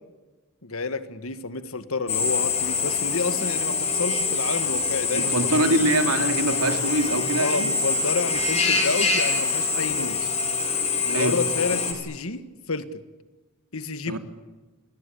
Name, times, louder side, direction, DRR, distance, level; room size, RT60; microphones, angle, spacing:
voice 1, 0.6-5.9 7.4-10.3 11.0-13.0 13.7-14.2, left 3 dB, 70° left, 12 dB, 1.8 m, -30 dB
Drill, 2.1-11.9, left 5 dB, 30° left, 4.6 m, -25 dB
voice 2, 5.1-7.7 11.1-11.4 14.1-14.2, right 2 dB, 85° right, 7 dB, 3.3 m, -24 dB
28.5 x 21.0 x 8.6 m, 1.2 s
head